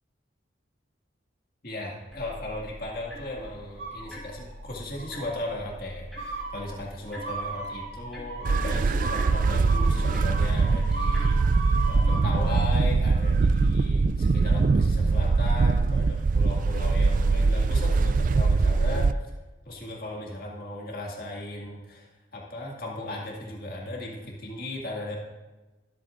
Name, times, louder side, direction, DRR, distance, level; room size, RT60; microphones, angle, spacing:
voice 1, 1.6-19.1 19.7-25.2, left 1 dB, 50° left, -2 dB, 2.1 m, -37 dB
sound 1, 2.1-12.0, equal, ahead, 3.0 m, -44 dB
sound 2, 3.8-4.5 4.9-5.5 6.2-12.5, right 3 dB, 80° right, 3.9 m, -37 dB
sound 3, 8.4-19.1, right 4 dB, 45° right, 0.3 m, -22 dB
22.0 x 8.5 x 2.6 m, 1.2 s
head